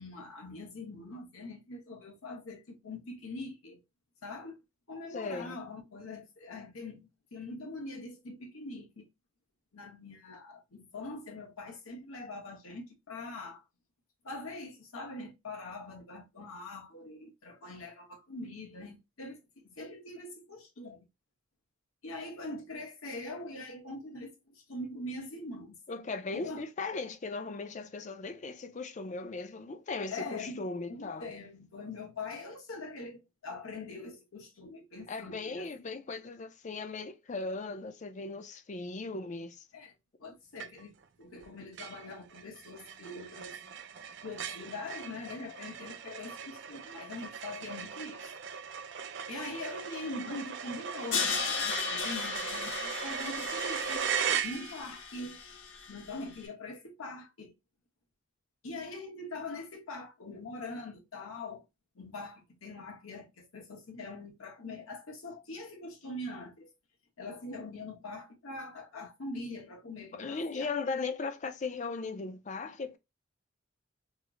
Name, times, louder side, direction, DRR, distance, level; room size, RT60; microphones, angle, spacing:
voice 1, 0.0-3.8 4.2-4.6 4.9-9.1 9.7-13.6 14.2-21.0 22.0-25.8 26.3-26.7 30.1-35.7 39.7-39.9 40.2-43.6 44.2-48.3 49.3-54.1 54.4-55.4 55.9-57.5 58.6-61.6 61.9-66.7 67.2-70.7, left 2 dB, 85° left, 1.1 m, -43 dB
voice 2, 5.1-5.6 25.9-31.3 35.1-39.7 70.1-73.0, left 3 dB, 35° left, 0.4 m, -38 dB
sound 1, 40.6-41.0 41.4-41.5 41.8-55.0, right 7 dB, 55° right, 0.4 m, -38 dB
Crash cymbal, 51.1-56.2, left 5 dB, 60° left, 0.8 m, -36 dB
3.0 x 2.0 x 3.6 m
head